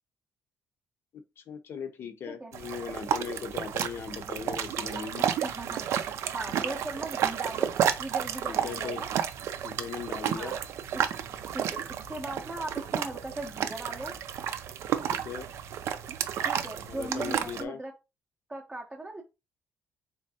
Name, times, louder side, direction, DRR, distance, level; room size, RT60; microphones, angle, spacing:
voice 1, 1.1-5.3 6.5-6.8 8.5-9.0 9.6-10.5 15.1-15.5 16.9-17.8, left 7 dB, 50° left, 0.6 m, -39 dB
sound 1, 2.5-17.6, right 9 dB, 65° right, 0.4 m, -32 dB
voice 2, 5.2-5.9 6.3-7.7 8.0-9.1 10.2-10.6 10.9-11.0 11.5-11.8 12.1-14.1 16.4-17.9 18.5-19.2, right 2 dB, 10° right, 0.6 m, -38 dB
3.6 x 3.1 x 2.7 m
cardioid pair, 145°, 5 cm